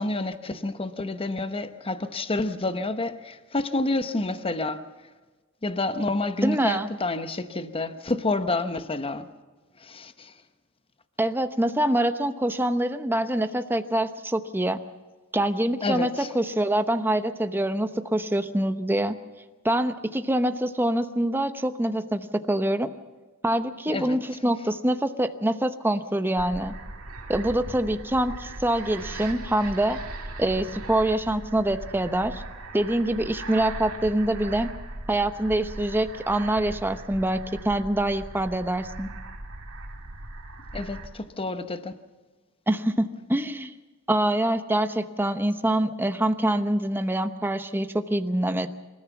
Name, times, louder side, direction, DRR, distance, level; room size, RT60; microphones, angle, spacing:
voice 1, 0.0-4.9 5.6-9.3 9.8-10.3 15.8-16.3 23.9-24.2 40.7-41.9, left 2 dB, 25° left, 0.9 m, -29 dB
voice 2, 6.4-6.9 11.2-14.8 15.3-19.2 19.6-22.9 23.4-26.7 27.3-30.0 30.4-32.4 32.7-34.7 35.1-39.1 42.7-43.7 44.1-48.7, right 1 dB, 10° right, 0.9 m, -25 dB
sound 1, 26.4-41.1, right 2 dB, 80° right, 2.2 m, -39 dB
26.5 x 14.0 x 7.1 m
head